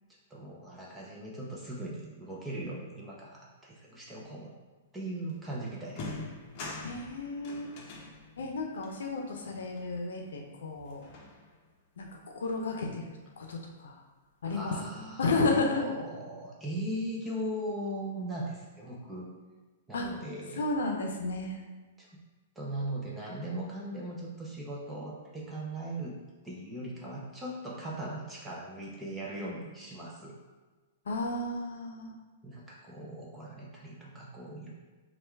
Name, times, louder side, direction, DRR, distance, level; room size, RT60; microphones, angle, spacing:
voice 1, 0.3-4.5 4.9-6.2 14.5-19.3 19.9-20.6 22.0-22.1 22.6-26.2 26.4-30.3 32.4-34.7, right 1 dB, 10° right, -4 dB, 0.6 m, -39 dB
sound 1, 5.3-5.4 5.8-10.4 10.8-11.7, left 2 dB, 35° left, 0.7 m, -45 dB
voice 2, 6.8-7.7 8.4-11.0 12.0-12.1 12.3-14.0 14.4-14.7 15.2-15.8 19.9-20.1 20.6-21.6 31.1-32.2, left 3 dB, 90° left, 2 dB, 0.6 m, -32 dB
3.3 x 2.3 x 4.4 m, 1.3 s
hypercardioid pair, 155°, 0 cm